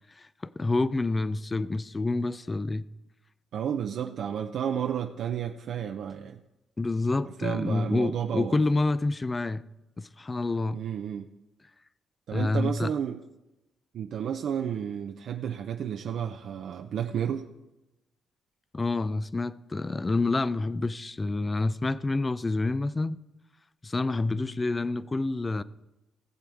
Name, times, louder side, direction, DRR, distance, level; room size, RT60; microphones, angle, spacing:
voice 1, 0.2-2.8 6.8-9.6 10.0-10.8 12.3-12.9 18.7-23.2 23.8-25.6, left 2 dB, 25° left, 0.4 m, -28 dB
voice 2, 3.5-6.4 7.4-8.5 10.7-11.3 12.3-13.2 13.9-17.5, right 8 dB, 70° right, 0.6 m, -31 dB
18.0 x 7.7 x 3.5 m
cardioid pair, 90°, 0 cm